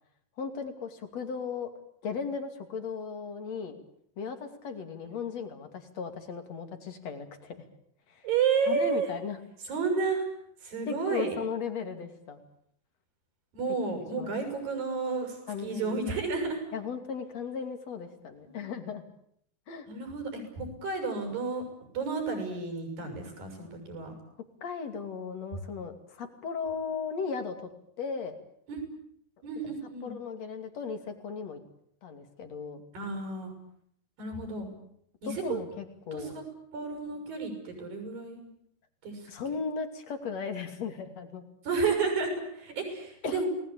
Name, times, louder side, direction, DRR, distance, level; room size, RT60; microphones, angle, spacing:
voice 1, 0.4-1.7 2.0-3.8 4.2-7.6 8.1-8.3 8.7-9.4 10.9-12.4 14.2-14.3 15.5-16.0 16.7-19.0 19.7-19.9 24.6-27.7 28.0-28.4 30.0-31.6 32.0-32.8 35.2-36.4 39.3-41.4 43.2-43.5, left 5 dB, 45° left, 8 dB, 3.3 m, -36 dB
voice 2, 8.2-9.1 9.6-10.3 10.6-11.4 13.5-16.6 18.5-18.6 19.9-21.7 21.9-24.1 28.7-28.8 29.4-30.1 32.9-33.5 34.2-34.7 35.2-35.6 36.1-36.4 36.7-38.5 39.0-39.3 41.6-43.5, right 4 dB, 60° right, 5 dB, 8.4 m, -31 dB
30.0 x 19.5 x 8.7 m, 0.69 s
omnidirectional pair, 4.7 m